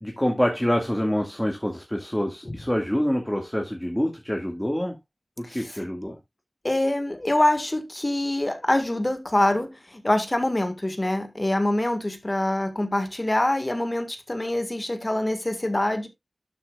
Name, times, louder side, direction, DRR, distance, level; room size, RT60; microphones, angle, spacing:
voice 1, 0.0-5.0 5.4-6.2, equal, 10° left, 2.0 m, -26 dB
voice 2, 5.4-5.9 6.6-16.1, left 1 dB, 30° left, 1.7 m, -25 dB
12.0 x 5.7 x 2.4 m
wide cardioid pair, 50°, 0 cm